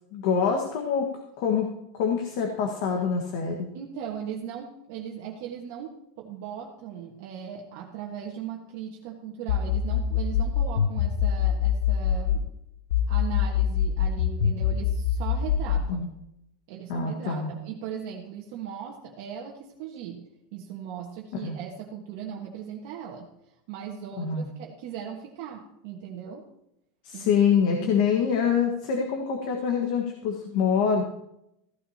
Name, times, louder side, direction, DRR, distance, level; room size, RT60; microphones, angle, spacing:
voice 1, 0.1-1.1 1.4-1.7 1.9-3.7 15.9-16.1 16.9-17.5 21.4-21.6 24.2-24.5 27.0-31.0, left 6 dB, 50° left, 2 dB, 1.5 m, -25 dB
voice 2, 3.7-12.5 13.1-16.1 16.7-20.2 20.5-23.3 23.7-26.5 27.1-27.3 27.8-28.0, right 8 dB, 50° right, -1 dB, 1.5 m, -38 dB
sound 1, 9.5-12.5 12.9-15.9, left 8 dB, 85° left, 0.7 m, -24 dB
15.5 x 12.0 x 2.9 m, 0.81 s
supercardioid pair, 175°, 0 cm